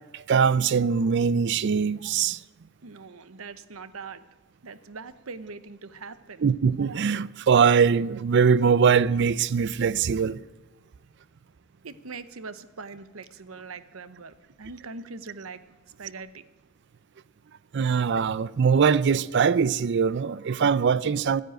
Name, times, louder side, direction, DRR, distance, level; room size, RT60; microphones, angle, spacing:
voice 1, 0.1-2.4 6.4-10.4 17.7-21.4, right 6 dB, 55° right, 0.4 m, -22 dB
voice 2, 2.8-4.2 4.6-6.4 11.8-15.6 16.0-16.4, right 4 dB, 85° right, 0.9 m, -41 dB
14.0 x 10.0 x 9.0 m
head